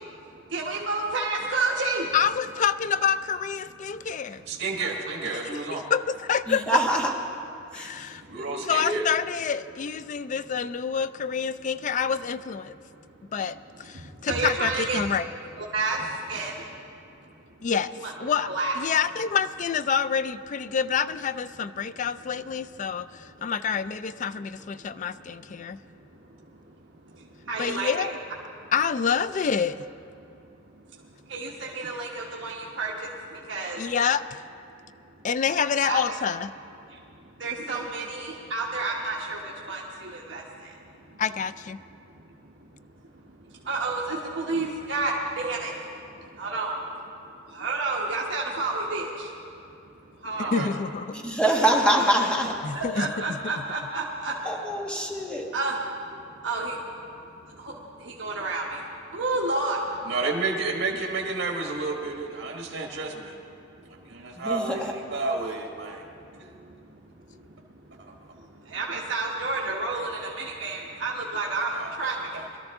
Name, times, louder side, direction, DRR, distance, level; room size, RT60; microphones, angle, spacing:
voice 1, 0.5-2.0 14.3-15.0 15.6-16.0 16.3-16.5 18.0-18.1 18.5-18.7 27.5-28.1 31.3-32.9 33.5-33.8 35.8-36.0 37.4-39.4 39.7-39.8 40.1-40.4 43.7-45.7 46.4-46.7 47.6-49.1 50.2-50.6 52.8-54.3 55.5-55.8 56.4-56.7 58.2-58.6 59.1-59.8 68.7-70.1 70.4-71.7 72.0-72.1, right 3 dB, 70° right, -3 dB, 1.2 m, -29 dB
voice 2, 2.1-4.4 5.3-5.4 5.7-6.8 7.7-8.2 8.7-12.7 13.3-15.3 17.6-17.9 18.2-25.8 27.6-28.2 28.7-29.8 33.8-34.4 35.2-36.5 41.2-41.8 50.5-51.0 52.6-53.4, left 7 dB, 40° left, 13 dB, 0.3 m, -27 dB
voice 3, 4.5-5.8 8.3-9.1 50.4-50.7 60.0-63.3 64.1-66.1 66.4-66.5 68.0-68.1 71.7-72.2, right 3 dB, 85° right, 0 dB, 1.5 m, -31 dB
voice 4, 6.5-7.1 7.7-7.9 8.3-9.0 51.1-52.6 54.4-55.5 64.3-64.9, right 1 dB, 5° left, 0 dB, 1.3 m, -25 dB
22.0 x 13.0 x 3.6 m, 2.7 s
head